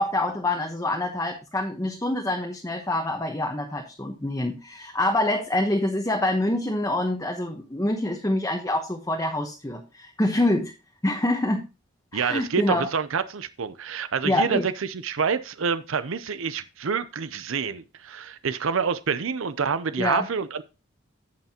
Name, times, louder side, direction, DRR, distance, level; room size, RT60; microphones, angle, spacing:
voice 1, 0.0-10.7 11.0-11.7 12.1-12.9 14.2-14.7 20.0-20.3, left 1 dB, 15° left, 1.0 m, -26 dB
voice 2, 12.1-20.6, right 6 dB, 80° right, 0.6 m, -27 dB
16.5 x 5.7 x 2.9 m
head